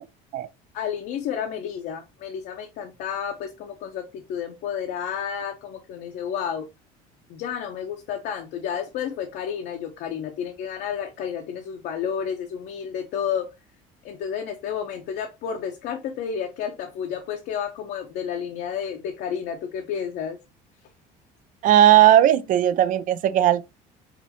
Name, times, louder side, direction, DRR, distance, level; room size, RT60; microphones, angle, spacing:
voice 1, 0.7-6.7 7.3-13.5 14.0-20.4, left 8 dB, 65° left, 0.8 m, -31 dB
voice 2, 21.6-23.6, right 12 dB, 50° right, 0.4 m, -17 dB
5.0 x 2.7 x 2.8 m
cardioid pair, 105°, 18 cm